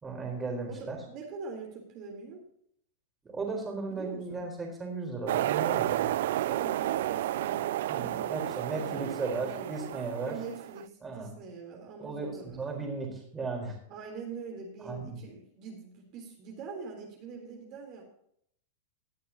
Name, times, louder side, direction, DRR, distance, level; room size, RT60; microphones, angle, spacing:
voice 1, 0.0-1.0 3.2-6.1 7.9-10.4 11.0-11.3 12.0-13.8 14.8-15.2, right 3 dB, 15° right, 1 dB, 4.1 m, -36 dB
voice 2, 0.7-2.4 3.9-4.5 6.3-9.9 10.2-12.9 13.9-18.0, right 4 dB, 45° right, 0 dB, 3.5 m, -44 dB
sound 1, 5.3-10.8, right 14 dB, 70° right, 0.3 m, -31 dB
17.5 x 9.3 x 2.9 m, 0.69 s
hypercardioid pair, 120°, 0 cm